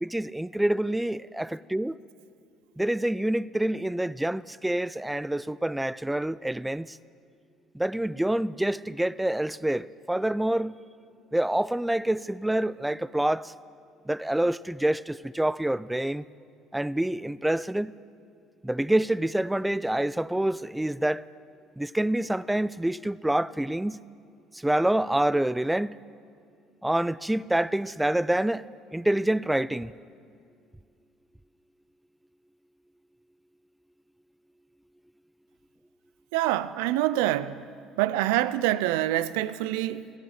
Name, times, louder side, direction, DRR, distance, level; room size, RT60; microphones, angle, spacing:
voice 1, 0.0-2.0 2.8-7.0 7.7-10.8 11.3-13.5 14.1-16.2 16.7-17.9 18.6-21.2 21.8-24.0 24.6-26.0 26.8-28.7 28.9-29.9, right 1 dB, 5° right, 0.3 m, -27 dB
voice 2, 36.3-37.6 38.0-40.1, right 14 dB, 85° right, 0.5 m, -26 dB
16.0 x 13.5 x 6.5 m
supercardioid pair, 85°, 0 cm